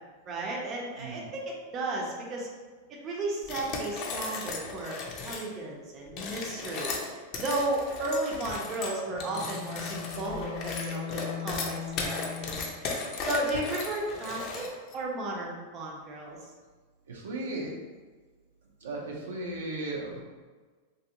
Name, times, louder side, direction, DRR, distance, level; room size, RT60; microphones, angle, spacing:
voice 1, 0.3-2.5 3.0-5.0 5.2-7.0 7.4-14.7 14.9-16.5, right 2 dB, 35° right, -2 dB, 0.7 m, -34 dB
sound 1, 3.4-5.5 6.1-14.9, left 4 dB, 45° left, 0.6 m, -36 dB
Bowed string instrument, 9.1-12.9, left 9 dB, 80° left, 0.7 m, -40 dB
voice 2, 17.1-17.7 18.8-20.2, right 2 dB, 85° right, -3 dB, 0.7 m, -36 dB
3.1 x 2.6 x 2.9 m, 1.4 s
hypercardioid pair, 110°, 0 cm